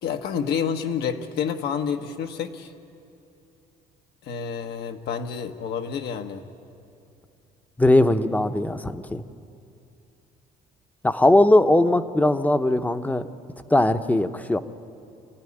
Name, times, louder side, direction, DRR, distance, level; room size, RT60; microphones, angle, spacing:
voice 1, 0.0-2.7 4.2-6.4, left 7 dB, 75° left, 5 dB, 1.4 m, -29 dB
voice 2, 7.8-9.2 11.0-13.3 13.7-14.6, left 1 dB, 10° left, 9 dB, 0.8 m, -19 dB
26.5 x 15.5 x 10.0 m, 2.6 s
cardioid pair, 110°, 17 cm